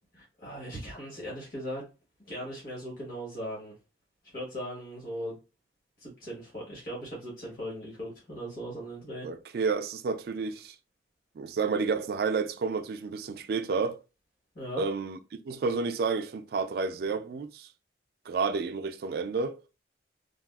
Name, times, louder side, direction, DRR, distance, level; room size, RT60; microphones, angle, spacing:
voice 1, 0.2-1.9 2.3-3.7 4.3-5.4 6.0-9.3 14.5-14.8, equal, 50° left, 1.1 m, -38 dB
voice 2, 9.2-10.7 11.4-14.0 14.8-15.2 15.4-17.7 18.3-19.6, right 4 dB, 55° right, 0.3 m, -30 dB
3.4 x 2.3 x 2.2 m
head